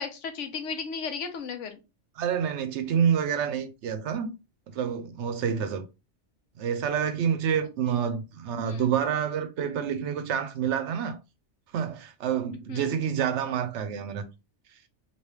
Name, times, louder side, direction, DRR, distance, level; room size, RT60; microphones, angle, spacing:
voice 1, 0.0-1.8 8.0-8.1 8.6-8.8 12.7-12.9, left 5 dB, 75° left, 1.0 m, -35 dB
voice 2, 2.2-4.3 4.7-5.8 6.6-11.2 11.7-14.2, right 8 dB, 75° right, 0.9 m, -28 dB
3.1 x 2.9 x 3.1 m
omnidirectional pair, 1.3 m